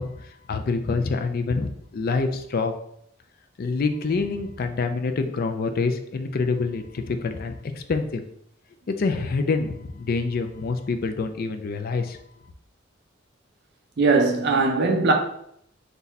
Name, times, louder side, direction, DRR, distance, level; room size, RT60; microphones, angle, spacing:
voice 1, 0.0-2.7 3.6-8.2 8.9-12.2, left 4 dB, 50° left, 0.4 m, -26 dB
voice 2, 14.0-15.1, right 3 dB, 55° right, 0.6 m, -20 dB
3.9 x 2.3 x 4.1 m
head